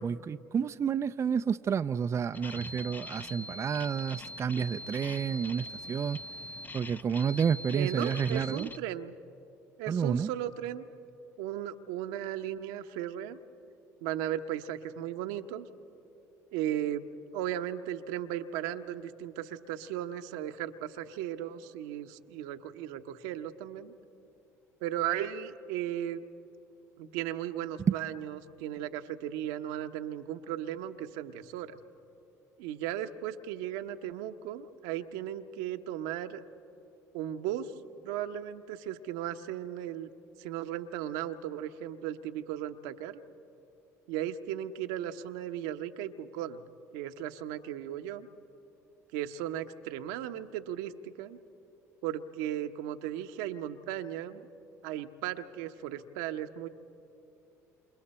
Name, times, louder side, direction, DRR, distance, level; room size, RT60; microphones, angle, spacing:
voice 1, 0.0-6.2 6.7-8.7 9.9-10.3 27.9-28.0, right 7 dB, 35° right, 10 dB, 0.5 m, -30 dB
sound 1, 2.3-8.8, left 1 dB, 20° left, 0.7 m, -43 dB
voice 2, 7.7-9.1 9.8-10.8 11.4-13.4 14.0-15.7 16.5-17.1 17.3-23.9 24.8-26.2 27.0-31.8 32.6-36.4 37.1-37.7 38.0-40.1 40.4-43.2 44.1-46.6 46.9-48.3 49.1-51.4 52.0-54.4 54.8-56.7, right 11 dB, 75° right, 7 dB, 1.0 m, -36 dB
28.0 x 28.0 x 4.4 m, 2.7 s
hypercardioid pair, 65°, 8 cm